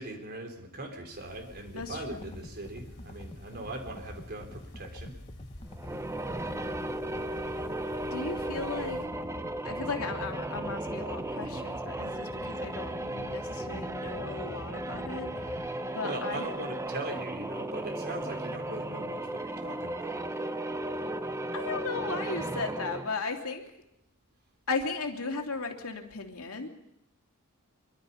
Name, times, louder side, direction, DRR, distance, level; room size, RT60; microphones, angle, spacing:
voice 1, 0.0-5.2 15.7-20.5, right 2 dB, 45° right, 3 dB, 4.0 m, -40 dB
sound 1, 1.1-9.1, left 1 dB, 55° left, 4.6 m, -53 dB
voice 2, 1.7-2.3 7.5-7.6 8.1-9.0 9.6-16.5 21.5-23.6 24.7-26.7, left 4 dB, 75° left, 3 dB, 2.7 m, -36 dB
sound 2, 1.7-15.7, left 1 dB, 30° left, 1.1 m, -46 dB
sound 3, 5.7-23.2, right 1 dB, 15° right, 0.9 m, -35 dB
24.5 x 24.0 x 5.7 m, 0.80 s
head